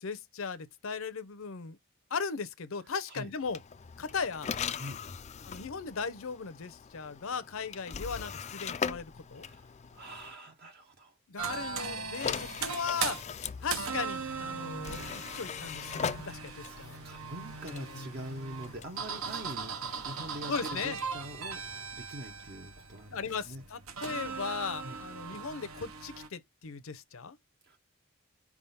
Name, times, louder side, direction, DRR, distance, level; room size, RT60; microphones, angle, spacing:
voice 1, 0.0-1.8 2.1-3.6 4.0-4.5 5.4-9.5 11.3-13.2 13.6-15.0 15.3-17.0 17.7-18.1 20.5-21.0 23.1-27.4, left 5 dB, 70° left, 0.7 m, -37 dB
sound 1, 3.4-10.4 11.4-21.9, left 7 dB, 30° left, 0.3 m, -41 dB
voice 2, 9.4-11.1 16.1-21.6 21.9-23.6 24.8-25.0 27.6-27.8, right 1 dB, 45° right, 0.8 m, -44 dB
sound 2, 11.4-26.3, right 5 dB, 75° right, 1.1 m, -39 dB
4.9 x 3.6 x 5.5 m
head